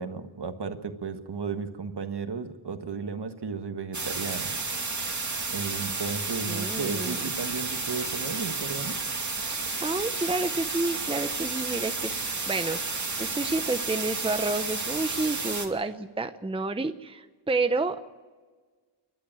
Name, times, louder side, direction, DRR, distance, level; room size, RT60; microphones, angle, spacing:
voice 1, 0.0-4.6 5.5-9.0, right 5 dB, 55° right, 7 dB, 1.7 m, -34 dB
sound 1, 3.9-15.7, right 3 dB, 40° right, 2.6 m, -32 dB
voice 2, 6.5-7.2 9.5-12.1 12.5-18.1, right 3 dB, 10° right, 9 dB, 0.7 m, -30 dB
29.5 x 12.0 x 9.0 m, 1.5 s
wide cardioid pair, 95°, 47 cm